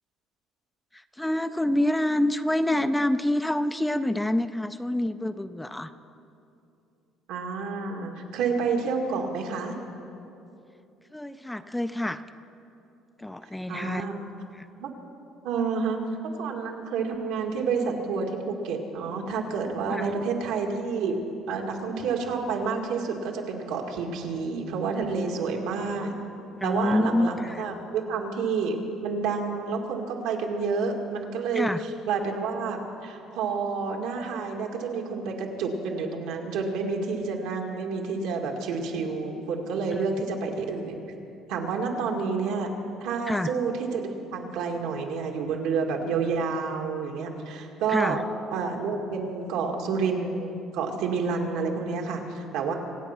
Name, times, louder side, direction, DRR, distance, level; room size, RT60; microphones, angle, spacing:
voice 1, 1.2-5.9 11.1-12.2 13.2-14.0 14.6-14.7 19.9-20.1 26.6-27.6 31.5-31.8 39.9-40.1 43.3-43.5 47.9-48.2, left 1 dB, 5° left, 11 dB, 0.3 m, -27 dB
voice 2, 7.3-9.7 13.7-14.3 14.8-14.9 15.4-16.0 16.4-21.2 21.5-26.2 26.6-41.0 41.5-42.7 43.0-48.2 48.5-52.7, right 5 dB, 80° right, 1 dB, 2.1 m, -29 dB
25.5 x 8.9 x 5.9 m, 2.8 s
cardioid pair, 170°, 0 cm